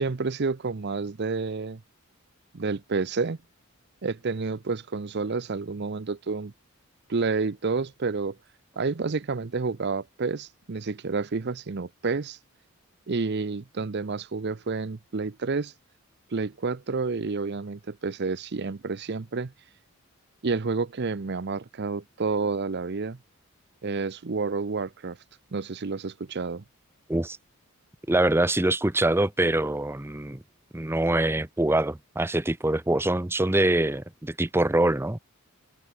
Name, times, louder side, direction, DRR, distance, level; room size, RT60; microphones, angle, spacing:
voice 1, 0.0-1.8 2.5-3.4 4.0-6.5 7.1-8.4 8.8-12.4 13.1-15.7 16.3-19.5 20.4-23.2 23.8-25.2 25.5-26.6, right 4 dB, 50° right, 0.6 m, -29 dB
voice 2, 28.1-30.4 30.7-35.2, right 1 dB, 10° right, 0.6 m, -24 dB
open air
head